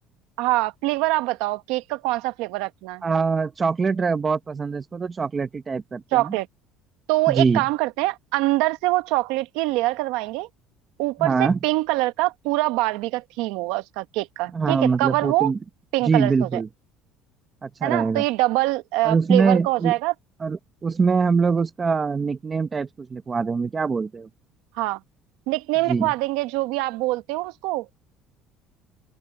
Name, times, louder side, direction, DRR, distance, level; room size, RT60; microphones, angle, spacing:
voice 1, 0.4-3.0 6.1-6.5 7.1-10.5 11.0-15.5 15.9-16.6 17.8-20.1 24.8-25.0 25.5-27.9, right 19 dB, 85° right, 1.1 m, -24 dB
voice 2, 3.0-6.3 7.3-7.6 11.2-11.6 14.5-15.6 16.1-16.7 17.6-18.2 19.0-19.9 20.4-24.3 25.9-26.1, right 5 dB, 20° right, 0.8 m, -23 dB
open air
cardioid pair, 160°, 0 cm